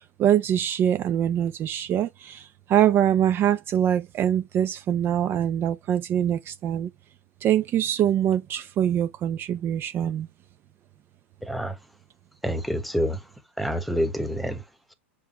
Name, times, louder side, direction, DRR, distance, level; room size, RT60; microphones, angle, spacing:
voice 1, 0.2-6.9 7.4-10.3, right 10 dB, 35° right, 0.6 m, -24 dB
voice 2, 12.4-13.2 13.6-14.6, equal, ahead, 1.1 m, -27 dB
6.8 x 4.8 x 2.9 m
hypercardioid pair, 110°, 7 cm